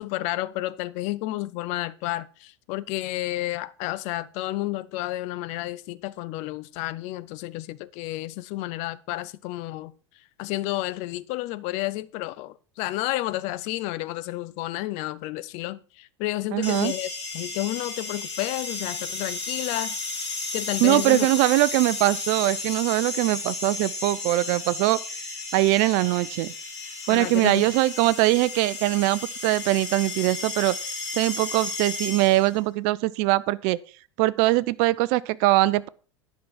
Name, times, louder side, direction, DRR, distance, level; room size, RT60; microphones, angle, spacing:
voice 1, 0.0-9.9 10.4-20.0 20.5-21.3 27.1-27.6, left 17 dB, 50° left, 0.7 m, -31 dB
voice 2, 16.5-16.9 20.8-25.0 25.5-26.5 27.1-30.7 31.2-33.8 34.2-35.9, right 19 dB, 50° right, 0.6 m, -22 dB
sound 1, 16.6-32.6, left 3 dB, 75° left, 3.6 m, -33 dB
10.5 x 5.7 x 6.2 m
hypercardioid pair, 85°, 15 cm